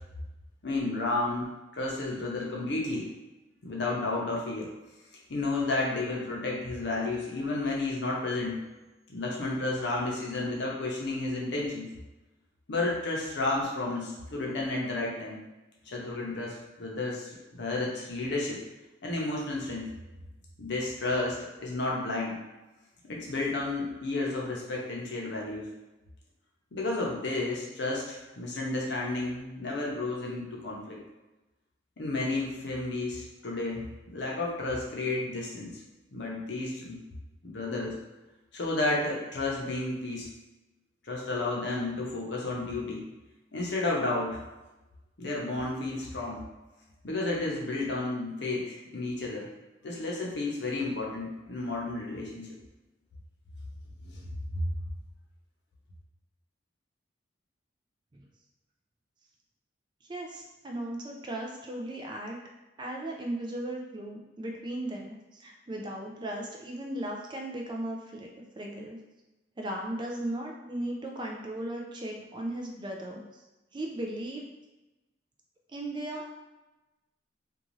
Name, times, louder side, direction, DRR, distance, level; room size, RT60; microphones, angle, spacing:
voice 1, 0.6-1.5 1.7-3.1 3.6-4.7 5.3-8.6 9.1-11.9 12.7-15.4 15.9-18.6 19.0-19.9 20.6-22.4 23.0-25.7 26.7-31.0 32.0-35.7 36.1-37.0 37.4-37.9 38.5-40.3 41.1-43.0 43.5-44.4 45.2-46.4 47.0-49.5 49.8-52.5 54.1-54.2 54.5-54.7, left 2 dB, 65° left, -2 dB, 0.7 m, -32 dB
voice 2, 60.1-62.4 62.8-68.3 68.6-69.0 69.6-73.4 73.7-74.4 75.7-76.3, right 1 dB, 25° right, 0 dB, 0.4 m, -36 dB
2.6 x 2.3 x 3.0 m, 1.1 s
head